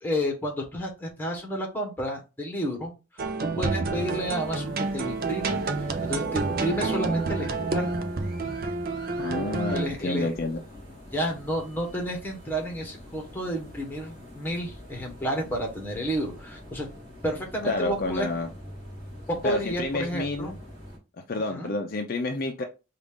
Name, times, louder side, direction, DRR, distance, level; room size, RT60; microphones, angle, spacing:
voice 1, 0.0-2.9 3.4-7.9 9.7-10.3 11.1-16.9 17.2-18.3 19.3-20.5 21.5-21.7, equal, 10° left, 1.1 m, -31 dB
sound 1, 3.2-9.9, right 3 dB, 50° right, 0.5 m, -29 dB
sound 2, 3.9-21.0, left 1 dB, 25° right, 2.4 m, -45 dB
voice 2, 9.2-10.6 17.7-18.5 19.4-20.6 21.3-22.6, left 2 dB, 50° left, 0.5 m, -29 dB
5.0 x 2.4 x 3.5 m
head